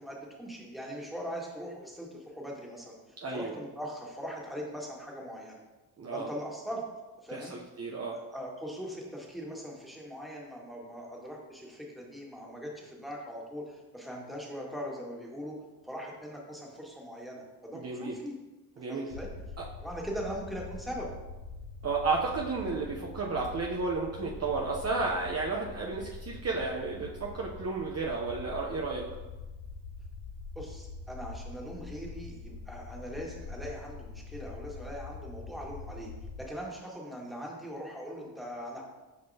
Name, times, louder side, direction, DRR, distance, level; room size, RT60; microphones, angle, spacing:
voice 1, 0.0-5.6 6.1-6.8 7.2-7.5 8.1-15.6 15.8-18.3 18.9-19.3 19.8-21.1 30.5-36.1 36.4-38.8, equal, ahead, -2 dB, 1.8 m, -41 dB
voice 2, 3.2-3.5 6.0-6.3 7.3-8.2 17.7-18.2 18.8-19.0 19.6-19.7 21.8-29.1, right 3 dB, 35° right, -2 dB, 0.8 m, -32 dB
sound 1, 19.1-36.5, left 3 dB, 75° left, 1.3 m, -44 dB
6.5 x 5.2 x 2.8 m, 1.1 s
hypercardioid pair, 50°, 44 cm